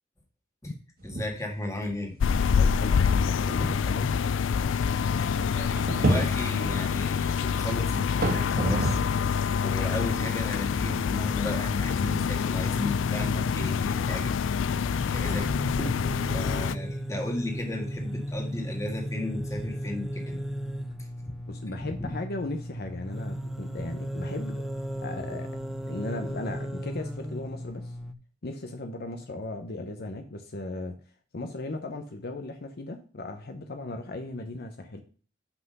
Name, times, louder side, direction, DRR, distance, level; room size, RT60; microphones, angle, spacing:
voice 1, 1.0-2.5 3.6-3.7 5.5-9.0 9.6-14.3 15.1-15.5 15.7-20.4 21.2-21.3 21.9-22.1 23.8-23.9, left 1 dB, 15° left, 2 dB, 1.8 m, -35 dB
sound 1, 1.0-1.5 1.8-1.9 2.6-2.7 3.2-9.2 9.6-13.9, right 1 dB, 50° right, 1.5 m, -33 dB
sound 2, 2.2-16.8, left 6 dB, 80° left, 0.4 m, -26 dB
voice 2, 2.5-4.2 21.5-24.6 25.0-25.5 25.9-28.0 28.4-30.9 31.3-35.0, left 2 dB, 55° left, 5 dB, 0.8 m, -37 dB
sound 3, 12.5-28.1, equal, ahead, 0.5 m, -36 dB
5.9 x 5.8 x 5.4 m, 0.40 s
head